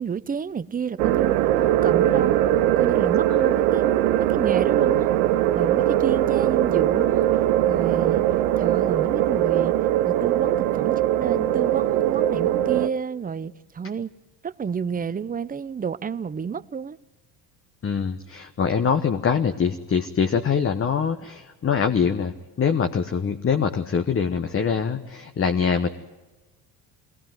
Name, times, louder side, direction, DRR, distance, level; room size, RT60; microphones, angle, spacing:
voice 1, 0.0-2.4 2.8-5.1 5.5-7.3 7.7-9.7 10.1-14.1 14.4-17.0, right 6 dB, 20° right, 0.7 m, -30 dB
sound 1, 1.0-12.9, right 12 dB, 85° right, 1.0 m, -21 dB
voice 2, 17.8-25.9, left 6 dB, 30° left, 1.2 m, -24 dB
21.5 x 18.5 x 9.2 m
supercardioid pair, 80°, 42 cm